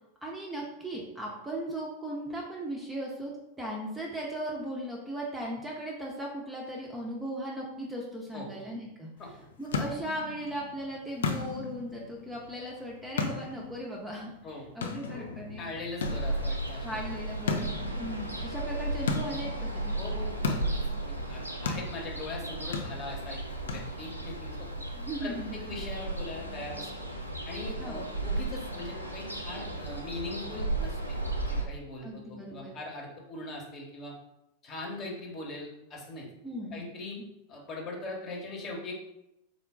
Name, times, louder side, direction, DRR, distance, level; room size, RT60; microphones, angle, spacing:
voice 1, 0.2-9.1 9.6-14.3 14.7-15.8 16.8-20.0 24.9-25.6 27.8-28.1 32.0-32.7 36.4-36.8, right 1 dB, 10° right, -3 dB, 0.6 m, -37 dB
sound 1, 9.2-24.4, left 5 dB, 65° left, 0.4 m, -37 dB
voice 2, 15.6-17.0 20.0-24.7 25.2-27.1 27.4-34.1 34.6-36.3 36.7-37.2 37.5-38.9, left 2 dB, 30° left, -1 dB, 1.0 m, -41 dB
Ocean, 16.0-31.6, right 2 dB, 85° right, 0.5 m, -35 dB
3.7 x 2.2 x 3.6 m, 0.87 s
figure-of-eight pair, 90°, 0 cm